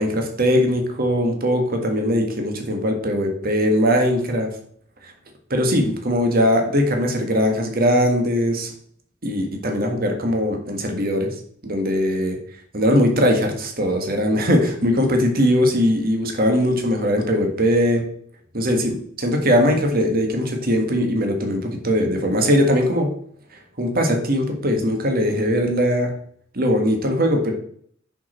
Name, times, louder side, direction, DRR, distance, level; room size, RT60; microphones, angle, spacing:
voice 1, 0.0-4.5 5.0-5.1 5.5-8.7 9.2-11.3 11.6-12.4 12.7-18.0 18.5-23.1 23.5-26.1 26.5-27.5, equal, 45° right, 4 dB, 1.5 m, -20 dB
6.3 x 5.9 x 4.3 m, 0.62 s
head